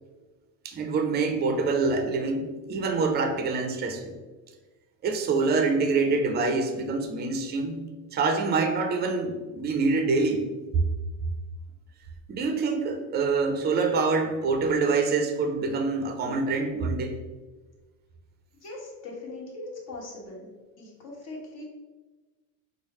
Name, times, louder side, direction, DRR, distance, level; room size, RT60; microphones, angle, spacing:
voice 1, 0.6-4.1 5.0-7.8 8.1-10.5 12.3-17.2, right 4 dB, 25° right, 5 dB, 0.4 m, -26 dB
voice 2, 18.5-20.5 20.8-21.6, left 2 dB, 50° left, -2 dB, 1.3 m, -40 dB
4.6 x 2.1 x 3.0 m, 1.2 s
supercardioid pair, 100°, 46 cm